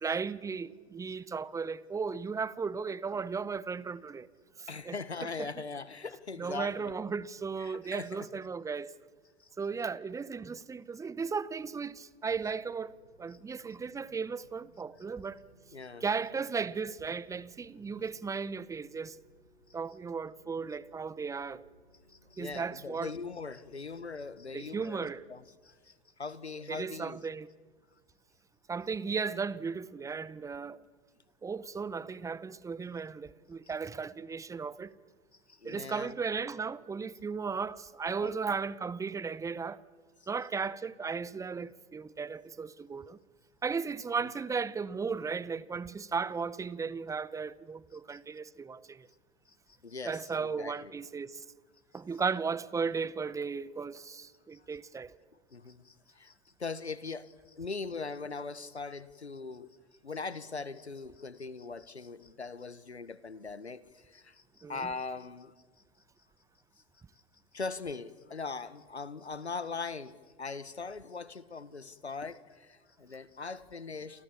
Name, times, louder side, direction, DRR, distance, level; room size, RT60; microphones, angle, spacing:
voice 1, 0.0-4.3 4.6-4.9 5.4-5.5 6.4-8.9 9.6-15.4 16.0-19.2 19.7-21.6 22.4-23.1 24.5-25.2 26.7-27.5 28.7-30.8 31.4-34.9 35.6-39.8 40.3-43.2 43.6-49.1 50.0-51.4 51.9-55.1 64.6-64.9, right 5 dB, 10° right, 0.8 m, -35 dB
voice 2, 4.7-6.9 7.6-8.4 15.7-16.0 22.1-27.2 35.5-36.1 38.2-38.4 48.1-48.2 49.8-50.9 54.5-54.6 55.5-56.3 56.6-59.7 60.0-64.4 64.7-65.5 67.5-74.2, left 4 dB, 90° left, 1.4 m, -41 dB
sound 1, 12.4-25.8, equal, 90° right, 6.6 m, -64 dB
29.0 x 28.5 x 7.1 m
figure-of-eight pair, 100°, 32 cm